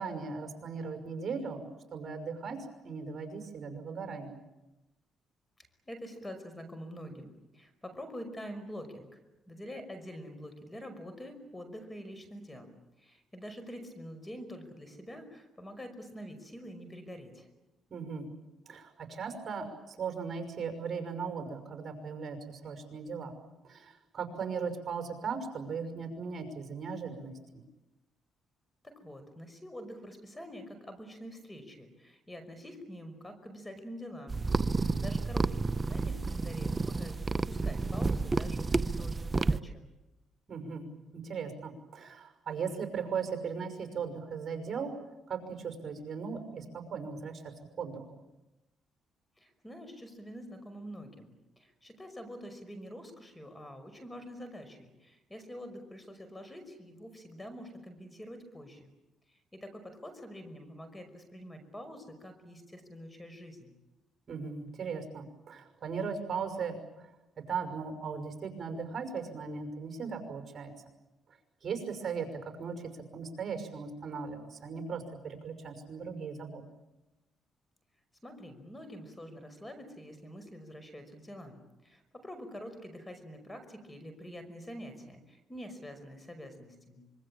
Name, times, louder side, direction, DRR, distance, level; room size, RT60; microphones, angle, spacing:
voice 1, 0.0-1.6 1.9-4.4 17.9-18.3 18.7-23.4 23.6-27.6 40.5-40.9 41.1-44.9 45.3-47.5 47.8-48.2 64.3-66.8 67.4-70.7 71.6-76.6, right 5 dB, 45° right, 6 dB, 5.9 m, -38 dB
voice 2, 5.9-9.2 9.5-12.7 13.0-17.5 28.8-34.4 34.7-39.7 49.4-58.9 59.3-63.7 78.2-87.0, equal, 15° left, 9 dB, 5.5 m, -46 dB
sound 1, 34.3-39.6, right 3 dB, 25° right, 0.9 m, -30 dB
25.5 x 24.0 x 8.8 m, 0.97 s
cardioid pair, 90°, 0 cm